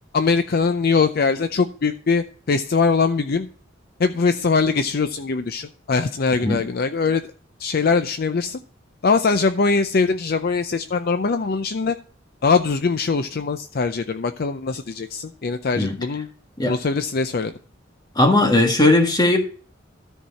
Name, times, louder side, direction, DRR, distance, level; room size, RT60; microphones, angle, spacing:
voice 1, 0.1-3.5 4.0-7.2 7.6-8.6 9.0-12.0 12.4-16.3 16.6-17.5, left 4 dB, 50° left, 9 dB, 0.5 m, -22 dB
voice 2, 18.1-19.4, left 2 dB, 20° left, 3 dB, 1.6 m, -17 dB
13.0 x 4.7 x 5.6 m, 0.43 s
head